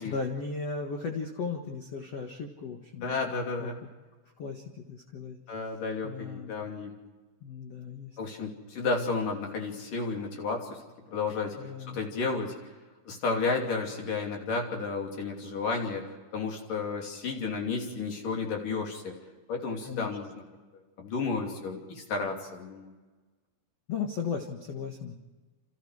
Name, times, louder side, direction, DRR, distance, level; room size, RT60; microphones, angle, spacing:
voice 1, 0.0-3.7 4.4-5.4 6.0-6.5 7.4-8.2 11.6-12.0 19.8-20.1 23.9-25.2, left 5 dB, 65° left, 3 dB, 1.5 m, -36 dB
voice 2, 3.0-3.8 5.5-6.9 8.2-10.8 11.1-11.6 11.9-12.5 13.1-19.1 19.5-20.4 21.0-22.9, left 4 dB, 50° left, 1 dB, 4.1 m, -32 dB
28.5 x 27.5 x 4.9 m, 1.3 s
omnidirectional pair, 5.4 m